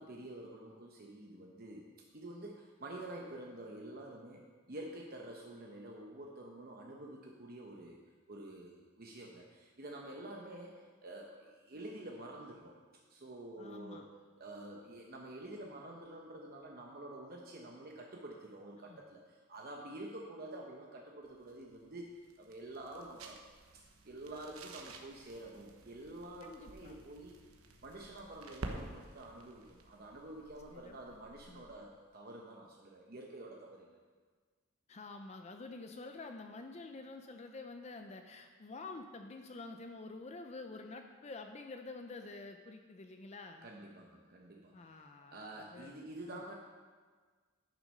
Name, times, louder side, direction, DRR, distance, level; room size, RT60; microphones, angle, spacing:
voice 1, 0.0-1.9 2.1-8.0 8.3-12.7 13.1-23.4 24.0-27.3 27.8-34.0 43.6-46.5, right 1 dB, 45° right, 0 dB, 0.9 m, -48 dB
voice 2, 13.6-14.1 18.9-19.0 26.4-26.9 30.7-31.0 31.5-31.6 34.9-43.7 44.7-45.9 46.3-46.4, left 3 dB, 30° left, 6 dB, 0.5 m, -48 dB
sound 1, 21.2-31.9, right 2 dB, 90° right, 1.0 m, -51 dB
10.5 x 6.0 x 5.4 m, 1.5 s
head